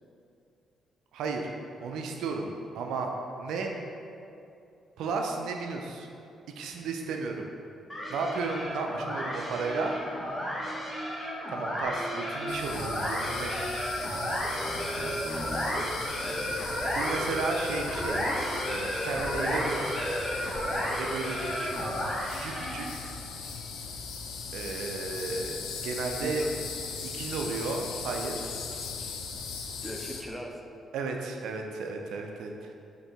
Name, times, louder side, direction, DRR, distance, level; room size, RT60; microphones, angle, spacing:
voice 1, 1.1-1.5 1.8-3.1 3.4-3.7 5.0-6.1 6.6-7.5 8.1-9.9 11.5-13.5 16.9-18.2 18.7-19.8 20.9-22.0 22.3-23.0 24.5-25.5 25.8-26.4 27.0-28.4 30.9-32.7, right 4 dB, 65° right, 2 dB, 0.3 m, -33 dB
sound 1, 7.9-23.0, equal, 20° left, 1.2 m, -32 dB
sound 2, 12.5-30.2, left 5 dB, 65° left, 0.3 m, -39 dB
voice 2, 14.5-16.6 26.2-26.5 29.8-30.6, equal, ahead, 0 dB, 0.5 m, -40 dB
5.1 x 2.6 x 3.4 m, 2.6 s
figure-of-eight pair, 40°, 0 cm